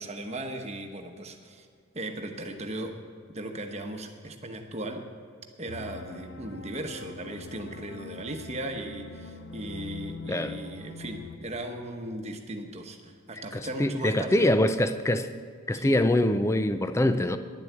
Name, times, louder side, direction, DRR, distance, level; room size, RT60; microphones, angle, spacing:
voice 1, 0.0-1.7 1.9-3.0 3.3-5.1 5.6-14.6 15.7-16.1, right 1 dB, 30° right, 4 dB, 1.1 m, -37 dB
sound 1, 5.7-11.4, left 4 dB, 55° left, 0.6 m, -43 dB
voice 2, 13.5-15.3 15.7-17.4, left 1 dB, 15° left, 10 dB, 0.4 m, -24 dB
11.0 x 7.9 x 8.0 m, 2.2 s
head